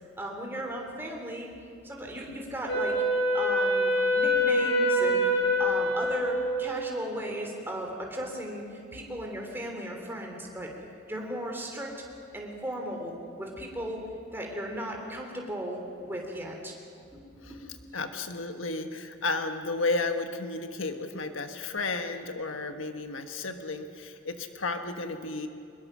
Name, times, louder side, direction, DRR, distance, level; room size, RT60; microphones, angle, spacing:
voice 1, 0.2-1.5 1.8-5.3 5.6-10.7 11.1-11.9 12.3-14.0 14.3-16.7 17.1-17.6, right 1 dB, 10° right, 0 dB, 3.3 m, -36 dB
Wind instrument woodwind instrument, 2.7-7.0, equal, 65° left, 6.2 m, -25 dB
voice 2, 17.9-25.5, left 3 dB, 90° left, 6 dB, 1.4 m, -33 dB
23.0 x 21.5 x 6.2 m, 2.6 s
head